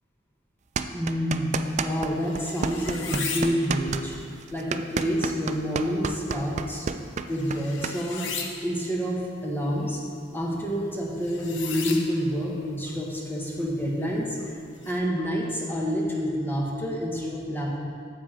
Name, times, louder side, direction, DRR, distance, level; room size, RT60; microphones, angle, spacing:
sound 1, 0.8-2.1 2.4-8.0, right 5 dB, 40° right, 0.3 m, -30 dB
voice 1, 0.9-4.2 4.5-6.9 7.3-8.3 8.6-10.0 10.3-14.5 14.9-17.8, equal, 10° left, -3 dB, 1.3 m, -28 dB
sound 2, 1.5-15.0, left 5 dB, 75° left, 0.9 m, -40 dB
9.6 x 7.6 x 3.8 m, 2.2 s
head